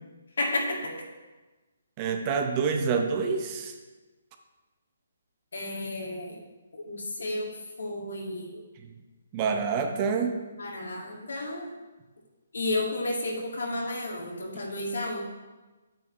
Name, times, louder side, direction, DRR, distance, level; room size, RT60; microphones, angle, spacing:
voice 1, 0.4-0.8 5.5-6.3 6.7-7.5 7.8-8.6 10.6-11.7 12.5-15.2, left 2 dB, 85° left, -1 dB, 2.1 m, -32 dB
voice 2, 2.0-3.7 9.3-10.4, right 5 dB, 25° right, 5 dB, 0.7 m, -27 dB
8.7 x 8.4 x 3.2 m, 1.2 s
hypercardioid pair, 160°, 0 cm